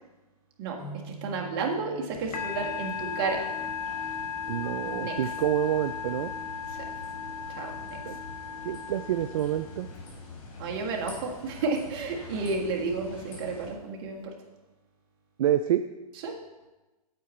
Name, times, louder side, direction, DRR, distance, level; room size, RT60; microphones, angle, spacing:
voice 1, 0.6-3.5 4.8-5.2 6.7-6.9 7.5-8.0 10.6-14.3 16.2-16.3, right 4 dB, 35° right, 0 dB, 1.7 m, -32 dB
sound 1, 0.8-4.3, right 2 dB, 15° left, 2.9 m, -46 dB
sound 2, 2.1-13.7, left 3 dB, 60° left, 3.7 m, -45 dB
Musical instrument, 2.3-10.0, left 6 dB, 80° left, 1.5 m, -36 dB
voice 2, 4.5-6.3 8.0-8.2 8.6-9.9 15.4-15.8, right 11 dB, 60° right, 10 dB, 0.4 m, -27 dB
8.5 x 8.5 x 4.3 m, 1.1 s
hypercardioid pair, 150°, 20 cm